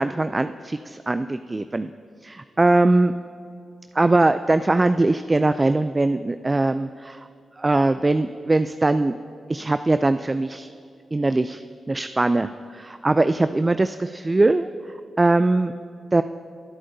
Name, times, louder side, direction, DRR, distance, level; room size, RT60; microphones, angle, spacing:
voice 1, 0.0-1.9 2.2-3.1 4.0-7.2 7.6-9.1 9.5-10.7 11.1-11.6 11.9-14.7 15.2-15.7 16.1-16.2, right 2 dB, 30° right, 11 dB, 0.3 m, -21 dB
20.5 x 7.6 x 2.7 m, 2.2 s
supercardioid pair, 40°, 0 cm